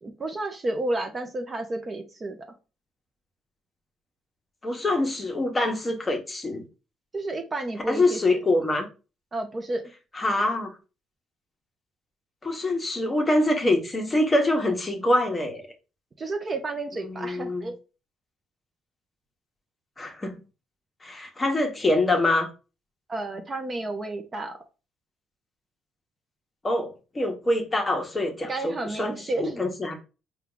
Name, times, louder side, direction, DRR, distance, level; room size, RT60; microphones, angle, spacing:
voice 1, 0.0-2.4 7.1-8.2 9.3-9.8 16.2-17.8 23.1-24.6 28.5-29.6, right 2 dB, 30° right, 0.6 m, -31 dB
voice 2, 4.6-6.6 7.9-8.9 10.2-10.7 12.4-15.6 17.1-17.7 20.0-20.4 21.0-22.5 26.6-30.0, left 1 dB, 20° left, 0.9 m, -25 dB
4.4 x 2.3 x 3.7 m
cardioid pair, 110°, 0 cm